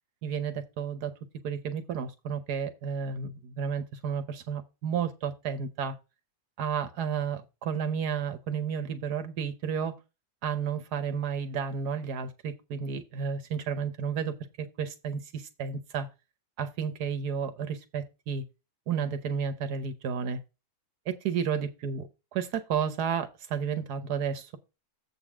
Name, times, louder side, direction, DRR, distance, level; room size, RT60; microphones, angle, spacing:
voice 1, 0.2-1.1 1.4-5.9 6.6-10.0 10.4-16.1 16.6-18.4 18.9-20.4 21.1-22.0 22.3-24.6, right 7 dB, 80° right, 1.4 m, -32 dB
7.7 x 4.0 x 6.0 m
omnidirectional pair, 1.7 m